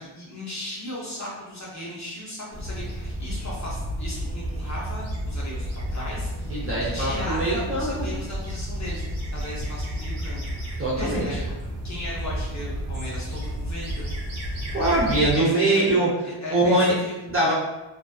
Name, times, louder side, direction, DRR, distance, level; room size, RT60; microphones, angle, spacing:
voice 1, 0.0-9.0 9.3-11.4 11.8-14.1 15.3-15.8 16.2-17.2, left 1 dB, 35° left, -5 dB, 0.5 m, -36 dB
sound 1, 2.5-15.4, equal, 75° right, 0.7 m, -31 dB
voice 2, 6.5-8.0 10.8-11.3 14.7-16.1 16.5-16.9 17.3-17.5, right 1 dB, 30° right, -7 dB, 0.6 m, -22 dB
2.5 x 2.2 x 2.2 m, 1.0 s
wide cardioid pair, 175°, 49 cm